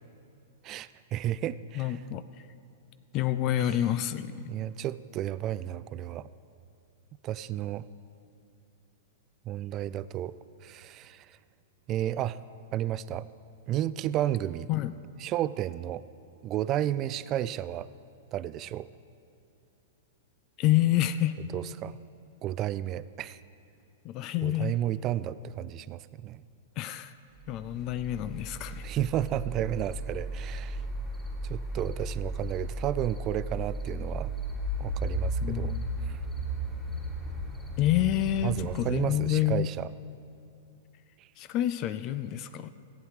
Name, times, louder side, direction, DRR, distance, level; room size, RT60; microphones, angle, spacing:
voice 1, 0.6-2.0 4.5-6.3 7.2-7.9 9.4-10.3 10.6-11.4 11.9-12.4 12.7-13.3 13.7-14.7 15.2-16.0 16.4-17.9 18.3-18.9 21.5-22.0 22.4-23.4 24.4-26.4 28.8-30.8 31.4-34.3 34.8-35.8 36.0-36.2 38.4-39.9 41.2-41.3, right 12 dB, 35° right, 17 dB, 0.3 m, -32 dB
voice 2, 1.8-2.5 3.1-4.6 14.7-14.9 20.6-21.4 24.0-24.8 26.8-27.1 27.5-28.9 35.4-35.9 37.8-39.7 41.4-42.7, left 12 dB, 40° left, 13 dB, 0.4 m, -28 dB
sound 1, 27.5-38.8, right 1 dB, 5° left, 2.6 m, -35 dB
15.0 x 8.7 x 4.8 m, 2.5 s
hypercardioid pair, 110°, 0 cm